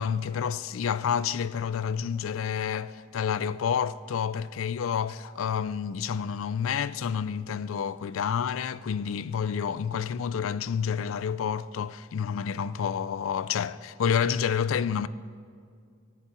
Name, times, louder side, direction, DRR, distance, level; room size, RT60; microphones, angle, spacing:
voice 1, 0.0-15.1, left 7 dB, 75° left, 0.4 m, -29 dB
17.0 x 7.1 x 7.1 m
head